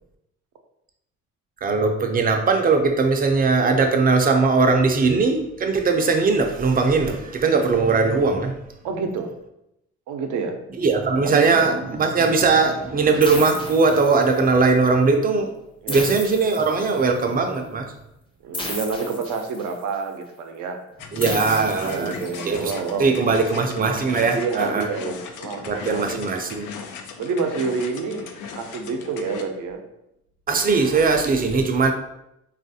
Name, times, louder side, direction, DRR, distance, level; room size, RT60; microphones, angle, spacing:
voice 1, 1.6-8.6 10.8-15.5 15.9-17.9 21.1-22.1 22.4-22.7 23.0-24.9 25.6-26.7 30.5-31.9, right 4 dB, 30° right, 5 dB, 0.4 m, -20 dB
voice 2, 8.8-9.3 10.1-10.6 11.3-11.5 15.8-16.0 18.4-20.8 21.8-23.1 24.3-26.3 27.2-29.8, right 5 dB, 80° right, 5 dB, 0.5 m, -28 dB
sound 1, 13.2-14.6 15.9-17.2 18.5-19.9 21.2-22.6, left 2 dB, 15° left, 0.6 m, -34 dB
sound 2, 21.0-29.4, left 6 dB, 80° left, 0.5 m, -37 dB
3.2 x 2.4 x 2.7 m, 0.84 s
cardioid pair, 90°, 30 cm